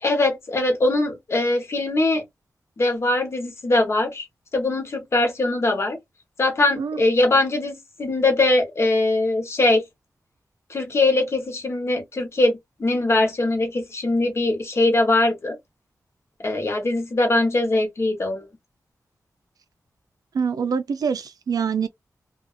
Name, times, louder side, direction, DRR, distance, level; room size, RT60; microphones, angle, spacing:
voice 1, 0.0-2.2 2.8-4.3 4.5-6.0 6.4-9.8 10.7-15.6 16.4-18.5, left 2 dB, 45° left, 1.1 m, -21 dB
voice 2, 20.3-21.9, right 6 dB, 75° right, 0.4 m, -25 dB
2.6 x 2.4 x 2.5 m
wide cardioid pair, 170°, 6 cm